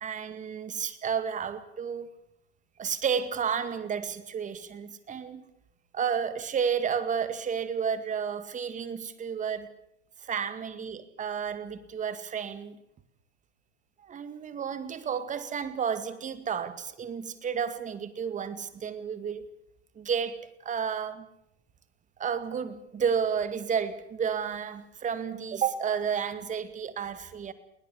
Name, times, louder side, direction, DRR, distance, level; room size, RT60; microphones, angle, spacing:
voice 1, 0.0-2.1 2.8-5.4 5.9-9.7 10.2-12.8 14.0-19.4 20.0-20.4 20.6-21.3 22.2-27.5, right 7 dB, 20° right, 12 dB, 2.1 m, -31 dB
21.0 x 19.5 x 8.3 m, 0.79 s
hypercardioid pair, 120°, 33 cm